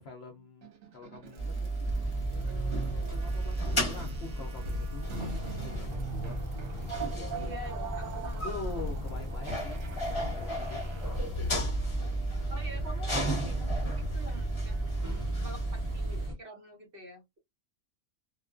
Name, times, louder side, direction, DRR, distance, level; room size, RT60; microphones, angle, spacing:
voice 1, 0.0-6.4 6.8-7.4 8.4-11.7, left 3 dB, 65° left, 0.7 m, -45 dB
sound 1, 0.6-11.9, right 3 dB, 70° right, 1.1 m, -41 dB
sound 2, 1.4-16.3, right 2 dB, 25° left, 0.8 m, -34 dB
sound 3, 1.8-16.3, left 1 dB, 15° right, 0.9 m, -37 dB
voice 2, 7.3-8.8 12.5-15.1 15.4-17.4, equal, 50° right, 1.0 m, -47 dB
2.4 x 2.2 x 2.3 m
omnidirectional pair, 1.4 m